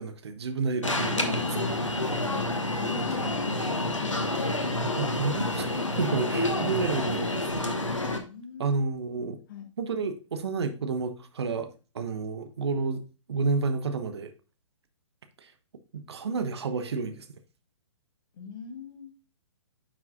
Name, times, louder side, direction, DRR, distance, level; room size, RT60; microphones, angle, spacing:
voice 1, 0.0-1.8 4.8-7.7 8.6-9.4 9.8-14.3 15.4-15.5 15.9-17.3, right 4 dB, 60° right, 1.1 m, -31 dB
Alarm, 0.8-8.2, left 2 dB, 85° left, 1.3 m, -28 dB
voice 2, 1.1-1.8 2.2-2.5 2.8-4.6 8.2-8.7 9.5-9.7 18.3-19.1, left 6 dB, 45° left, 1.7 m, -40 dB
9.6 x 5.9 x 2.4 m
figure-of-eight pair, 125°, 16 cm